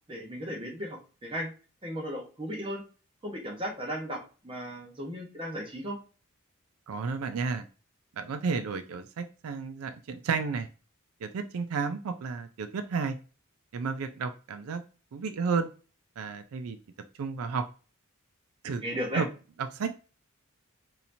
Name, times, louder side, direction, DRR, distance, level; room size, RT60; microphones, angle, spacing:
voice 1, 0.1-1.5 1.8-2.8 3.2-6.0 18.8-19.3, equal, 25° right, 0 dB, 1.1 m, -35 dB
voice 2, 6.9-7.6 8.2-10.7 11.2-13.2 13.7-14.8 15.1-15.7 16.2-16.8 17.2-17.6 18.6-18.8 19.1-19.3 19.7-20.0, right 5 dB, 90° right, 10 dB, 0.4 m, -32 dB
4.1 x 2.8 x 2.6 m, 0.35 s
head